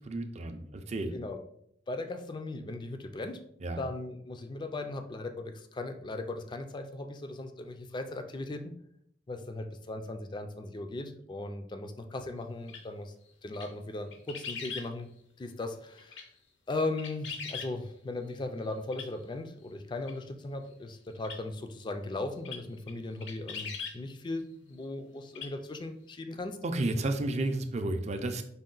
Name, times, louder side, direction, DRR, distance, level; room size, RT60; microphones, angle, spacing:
voice 1, 0.1-1.1 3.6-3.8 26.6-28.4, right 2 dB, 35° right, 6 dB, 0.4 m, -32 dB
voice 2, 1.9-3.4 3.8-8.7 9.3-13.1 13.4-15.1 15.4-16.3 16.7-26.6, left 2 dB, 25° left, 7 dB, 0.4 m, -38 dB
sound 1, 12.7-12.8 13.5-13.7 14.1-14.9 16.0-16.3 16.8-17.7 18.9-19.1 20.1-20.2 21.2-21.4 22.4-22.6 22.9-23.0 23.2-24.0 25.3-25.5 25.8-25.9, left 6 dB, 75° left, 0.7 m, -40 dB
5.3 x 2.2 x 3.8 m, 0.71 s
head